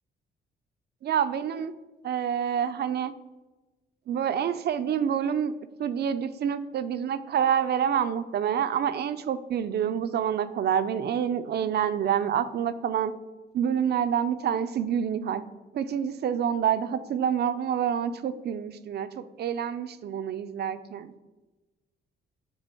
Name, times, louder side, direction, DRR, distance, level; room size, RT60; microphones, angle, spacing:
voice 1, 1.0-1.7 2.0-3.1 4.1-5.5 5.8-13.1 13.5-15.4 15.7-21.1, right 8 dB, 55° right, 12 dB, 0.5 m, -27 dB
8.9 x 3.4 x 4.4 m, 1.2 s
cardioid pair, 90°, 20 cm